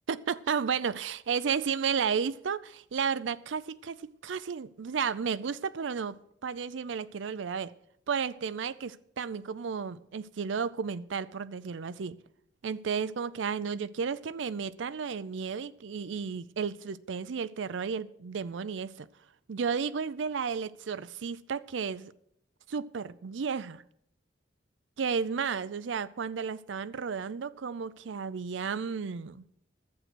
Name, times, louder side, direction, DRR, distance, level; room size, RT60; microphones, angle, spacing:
voice 1, 0.1-6.2 6.4-7.7 8.1-12.2 12.6-19.1 19.5-22.1 22.7-23.8 25.0-29.4, right 6 dB, 85° right, 0.5 m, -33 dB
11.5 x 8.0 x 6.1 m
head